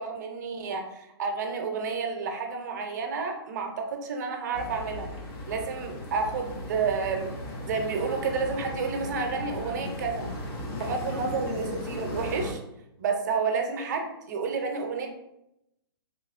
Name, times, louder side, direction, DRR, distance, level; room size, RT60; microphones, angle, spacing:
voice 1, 0.0-5.1 5.5-7.3 7.6-10.3 10.8-12.6 13.0-15.1, right 5 dB, 45° right, 4 dB, 0.5 m, -30 dB
sound 1, 4.5-12.5, left 1 dB, 20° left, 0.4 m, -36 dB
2.9 x 2.8 x 2.4 m, 0.85 s
hypercardioid pair, 150°, 13 cm